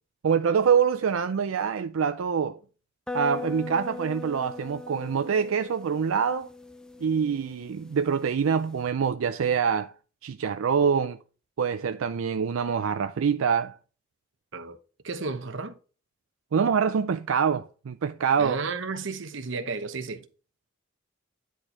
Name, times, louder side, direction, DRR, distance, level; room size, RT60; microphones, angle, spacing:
voice 1, 0.2-2.6 3.1-6.5 7.0-9.9 10.2-11.2 11.6-13.7 16.5-18.6, right 6 dB, 90° right, 0.4 m, -25 dB
sound 1, 3.1-8.8, left 3 dB, 5° left, 0.4 m, -40 dB
voice 2, 15.0-15.8 18.4-20.3, right 4 dB, 65° right, 0.9 m, -33 dB
9.8 x 4.5 x 4.2 m
head